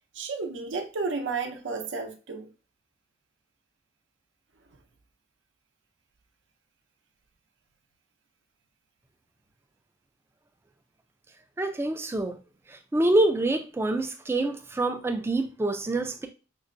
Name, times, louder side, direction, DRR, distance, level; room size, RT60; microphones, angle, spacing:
voice 1, 0.1-2.5, right 4 dB, 70° right, 0.6 m, -32 dB
voice 2, 11.6-12.4 12.9-16.3, right 2 dB, 15° right, 0.3 m, -26 dB
5.3 x 2.0 x 2.5 m
head